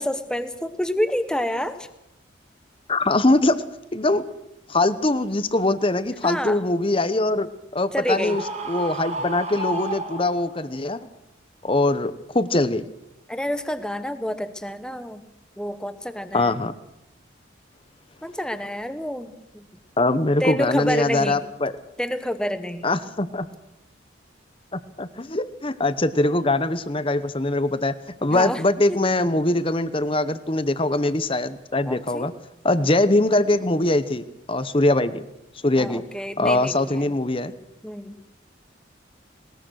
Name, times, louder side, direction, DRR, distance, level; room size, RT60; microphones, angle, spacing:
voice 1, 0.0-1.9 6.2-6.6 7.9-8.4 13.3-15.2 15.6-16.6 18.2-19.7 20.4-21.4 22.0-22.9 28.3-28.6 28.9-29.0 31.9-32.3 35.8-37.2 37.8-38.2, equal, 5° left, 10 dB, 1.1 m, -28 dB
voice 2, 2.9-3.6 3.9-4.2 4.7-7.5 7.7-8.4 8.7-11.0 11.6-12.8 16.3-16.7 20.0-21.7 22.8-23.5 24.7-27.9 28.2-32.3 32.6-35.2 35.6-36.0 36.4-37.5, left 2 dB, 25° left, 13 dB, 0.9 m, -22 dB
Screaming, 8.0-10.7, right 2 dB, 35° right, 2.0 m, -32 dB
20.5 x 20.0 x 6.4 m, 0.85 s
head